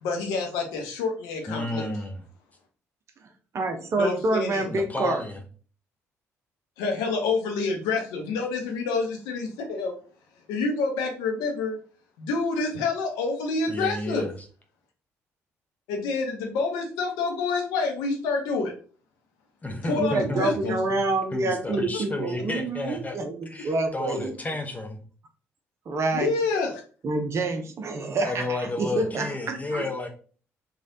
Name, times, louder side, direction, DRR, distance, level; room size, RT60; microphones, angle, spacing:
voice 1, 0.0-1.9 3.9-4.7 6.8-9.9 10.5-11.8 12.2-14.2 15.9-18.7 19.9-20.8 26.1-26.8, left 4 dB, 65° left, 2 dB, 0.6 m, -28 dB
voice 2, 1.5-2.2 4.6-5.4 13.7-14.3 19.6-21.0 21.3-23.2 23.5-25.0 28.2-30.1, left 2 dB, 20° left, 4 dB, 0.7 m, -32 dB
voice 3, 3.5-5.2 20.0-24.3 25.9-26.3 27.0-29.9, right 2 dB, 40° right, 5 dB, 0.6 m, -27 dB
3.2 x 2.3 x 2.6 m, 0.40 s
figure-of-eight pair, 45°, 7 cm